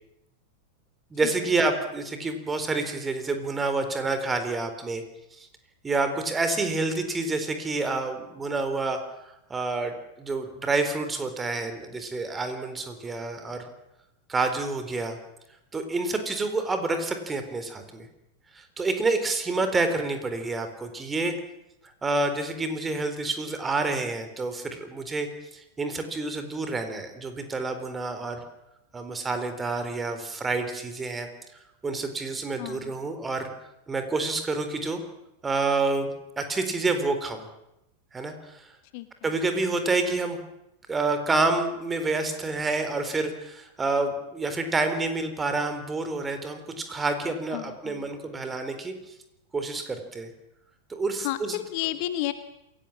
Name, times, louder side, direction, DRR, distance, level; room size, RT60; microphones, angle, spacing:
voice 1, 1.1-5.0 5.4-5.5 5.8-9.0 9.5-13.7 14.3-15.2 15.7-18.1 18.5-21.3 22.0-28.4 28.9-31.3 31.8-33.5 33.9-35.0 35.4-37.4 38.1-38.7 39.2-40.4 40.9-48.9 49.5-50.3 50.9-51.6, right 3 dB, 15° right, 8 dB, 4.2 m, -28 dB
voice 2, 32.6-32.9 38.9-39.1 47.5-48.1 51.2-52.3, left 14 dB, 45° left, 12 dB, 1.5 m, -31 dB
27.5 x 17.0 x 7.5 m, 0.85 s
figure-of-eight pair, 90°, 0 cm